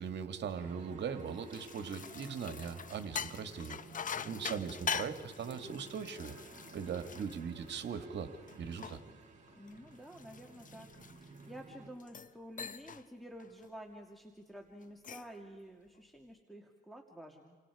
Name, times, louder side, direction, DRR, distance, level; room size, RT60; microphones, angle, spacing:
voice 1, 0.0-3.8 4.2-6.3 6.7-9.0, right 6 dB, 60° right, 8 dB, 2.1 m, -40 dB
sound 1, 0.5-11.9, right 3 dB, 35° right, 7.2 m, -56 dB
sound 2, 1.2-8.0 8.5-11.5 12.0-12.3 12.6-13.0 13.4-13.7 14.8-15.4, left 6 dB, 40° left, 0.9 m, -43 dB
voice 2, 9.6-10.9 11.2-17.6, equal, ahead, 2 dB, 2.5 m, -51 dB
30.0 x 25.5 x 4.9 m, 1.5 s
cardioid pair, 90°, 20 cm